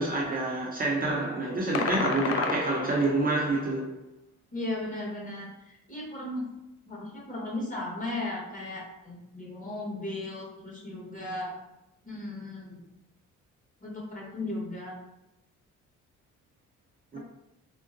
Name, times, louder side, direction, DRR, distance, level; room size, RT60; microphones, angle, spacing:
voice 1, 0.0-3.9 17.1-17.2, right 2 dB, 30° right, -4 dB, 0.6 m, -27 dB
sound 1, 1.7-3.5, left 5 dB, 50° left, 0.4 m, -31 dB
voice 2, 4.5-5.5 5.9-6.4 6.9-11.5 12.0-12.8 13.8-14.9 17.1-17.2, left 2 dB, 25° left, -4 dB, 1.2 m, -36 dB
3.7 x 2.1 x 2.5 m, 0.91 s
cardioid pair, 90°, 30 cm